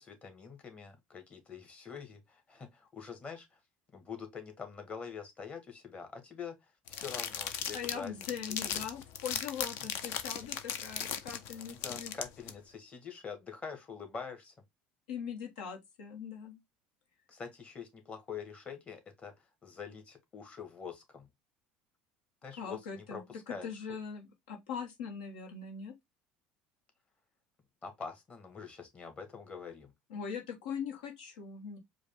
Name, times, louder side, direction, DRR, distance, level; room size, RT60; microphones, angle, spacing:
voice 1, 0.0-3.6 3.9-8.1 8.5-8.8 11.7-14.5 17.3-21.3 22.4-23.8 27.8-29.9, left 6 dB, 30° left, 1.5 m, -45 dB
sound 1, 6.9-12.5, left 8 dB, 70° left, 0.7 m, -38 dB
voice 2, 7.7-12.1 15.1-16.6 22.6-25.9 30.1-31.8, left 7 dB, 85° left, 1.2 m, -41 dB
4.8 x 2.4 x 3.5 m
supercardioid pair, 85°, 4 cm